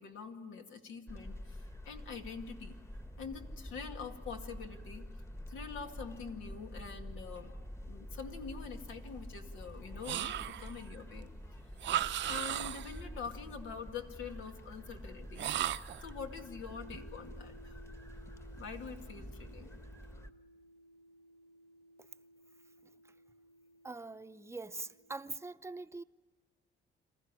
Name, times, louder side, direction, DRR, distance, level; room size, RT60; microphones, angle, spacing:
voice 1, 0.0-2.8 3.2-5.1 5.5-7.5 7.9-11.3 11.8-11.9 12.3-15.5 16.0-17.8 18.6-19.7, left 5 dB, 85° left, 2.3 m, -45 dB
sound 1, 1.1-20.3, equal, 15° left, 1.3 m, -48 dB
sound 2, 10.0-10.8 11.8-13.0 15.3-16.1, right 12 dB, 65° right, 0.6 m, -35 dB
sound 3, 16.7-25.5, equal, 55° left, 1.3 m, -59 dB
voice 2, 23.8-26.0, right 3 dB, 15° right, 0.7 m, -43 dB
27.5 x 14.5 x 9.8 m
cardioid pair, 90°, 20 cm